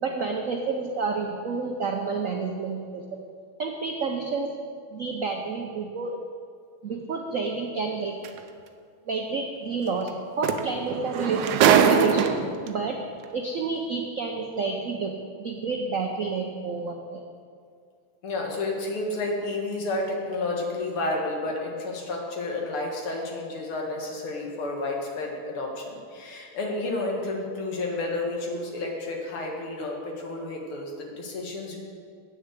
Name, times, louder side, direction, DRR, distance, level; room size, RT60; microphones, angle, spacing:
voice 1, 0.0-3.3 3.6-4.5 4.9-6.2 6.8-8.2 9.1-12.4 12.7-13.0 13.3-17.2, right 4 dB, 90° right, 3 dB, 0.7 m, -30 dB
sound 1, 8.2-8.4 10.1-10.2 10.4-12.7 13.6-13.7, right 8 dB, 70° right, 1.1 m, -21 dB
voice 2, 18.2-31.8, left 2 dB, 80° left, 0 dB, 2.5 m, -31 dB
8.6 x 6.7 x 8.1 m, 2.3 s
omnidirectional pair, 2.4 m